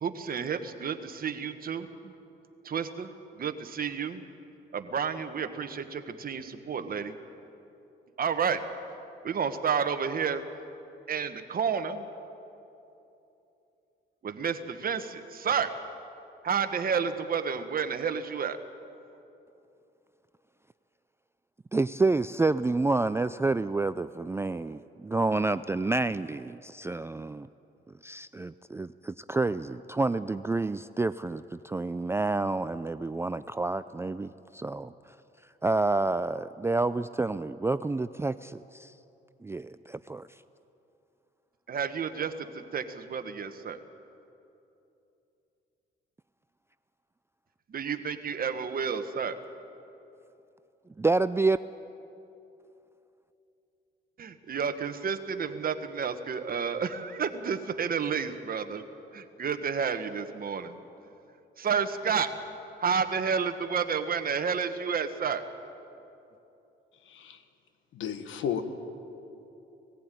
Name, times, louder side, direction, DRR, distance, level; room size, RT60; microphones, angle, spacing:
voice 1, 0.0-2.1 2.6-4.2 4.7-7.1 8.2-8.6 9.2-10.4 11.1-12.0 14.2-15.8 16.4-18.6 41.7-43.8 47.7-49.4 54.2-58.8 59.4-60.8 61.6-62.3 62.8-65.5, right 6 dB, 45° right, 9 dB, 1.4 m, -30 dB
voice 2, 21.7-27.5 28.0-34.9 35.6-38.9 39.4-40.3 51.0-51.6, right 3 dB, 15° right, 13 dB, 0.4 m, -29 dB
voice 3, 67.1-67.4 67.9-68.6, left 8 dB, 80° left, 8 dB, 1.5 m, -33 dB
19.0 x 15.0 x 9.2 m, 2.9 s
cardioid pair, 90°, 20 cm